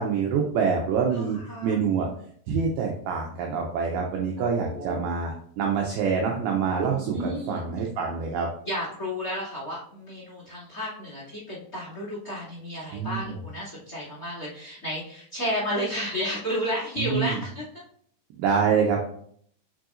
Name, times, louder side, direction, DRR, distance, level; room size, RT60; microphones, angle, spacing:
voice 1, 0.0-2.1 2.5-8.5 12.9-13.4 17.0-17.4 18.4-19.0, right 6 dB, 80° right, 0 dB, 2.2 m, -26 dB
voice 2, 1.1-1.8 4.4-5.0 7.0-7.6 8.6-17.7, equal, 30° left, -6 dB, 1.9 m, -32 dB
7.5 x 5.6 x 2.5 m, 0.63 s
omnidirectional pair, 5.1 m